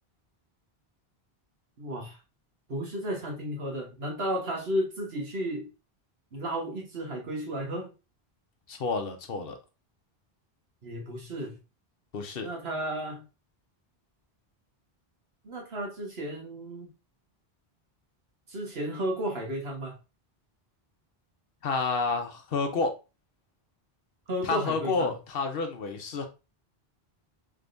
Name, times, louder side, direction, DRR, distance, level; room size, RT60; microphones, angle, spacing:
voice 1, 1.8-2.2 2.7-5.7 6.3-7.9 10.8-11.6 12.4-13.2 15.4-16.9 18.5-20.0 24.3-25.1, equal, 75° right, 1.6 m, -33 dB
voice 2, 8.7-9.6 12.1-12.5 21.6-22.9 24.4-26.3, left 4 dB, 65° left, 0.9 m, -29 dB
3.7 x 3.4 x 2.5 m
omnidirectional pair, 1.0 m